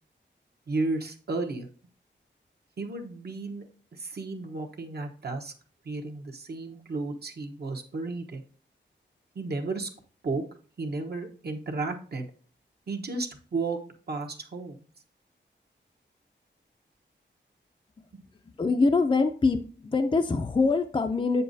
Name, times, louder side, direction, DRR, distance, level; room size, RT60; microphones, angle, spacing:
voice 1, 0.7-1.7 2.8-3.7 3.9-5.5 5.8-8.4 9.3-9.9 10.2-10.4 10.8-12.3 12.9-14.8, right 3 dB, 55° right, 4 dB, 1.1 m, -33 dB
voice 2, 18.6-21.4, left 3 dB, 25° left, 5 dB, 0.5 m, -24 dB
7.9 x 6.8 x 2.7 m, 0.42 s
wide cardioid pair, 90°, 19 cm